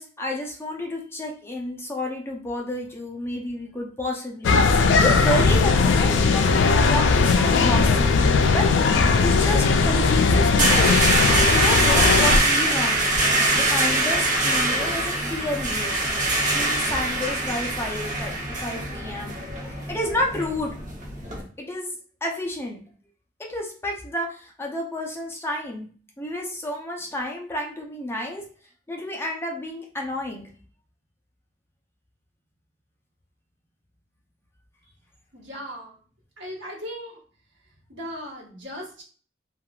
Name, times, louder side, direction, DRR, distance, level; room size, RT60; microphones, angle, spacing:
voice 1, 0.0-8.2 8.5-11.1 11.5-13.0 13.5-16.0 16.5-18.3 18.6-20.7 21.6-21.9 22.2-22.8 23.5-25.9 26.2-28.4 28.9-30.5, left 1 dB, 15° left, 0 dB, 0.5 m, -30 dB
sound 1, 4.4-12.4, left 4 dB, 85° left, 0.3 m, -18 dB
sound 2, 9.8-21.4, right 2 dB, 45° right, 0.9 m, -23 dB
voice 2, 35.3-36.0 36.4-37.2 37.9-39.0, equal, 85° right, -4 dB, 1.3 m, -37 dB
3.4 x 2.3 x 2.3 m, 0.42 s
head